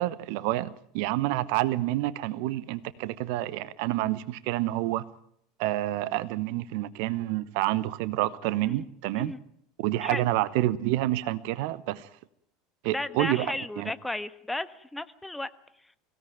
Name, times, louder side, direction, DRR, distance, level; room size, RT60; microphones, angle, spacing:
voice 1, 0.0-5.0 5.6-9.3 9.8-12.1 12.8-13.9, right 16 dB, 55° right, 0.9 m, -28 dB
voice 2, 12.8-15.5, left 2 dB, 5° left, 1.3 m, -34 dB
24.5 x 17.0 x 9.2 m
figure-of-eight pair, 75°, 0 cm